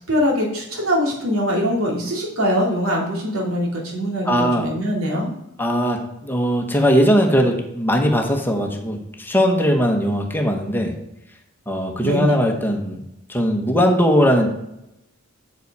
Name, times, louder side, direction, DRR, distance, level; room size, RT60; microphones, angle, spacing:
voice 1, 0.1-5.3 12.0-12.4, equal, 85° right, -2 dB, 2.7 m, -22 dB
voice 2, 4.2-4.7 5.6-10.9 11.7-13.0 13.3-14.5, equal, 10° left, 2 dB, 1.2 m, -19 dB
7.9 x 6.9 x 4.8 m, 0.84 s
head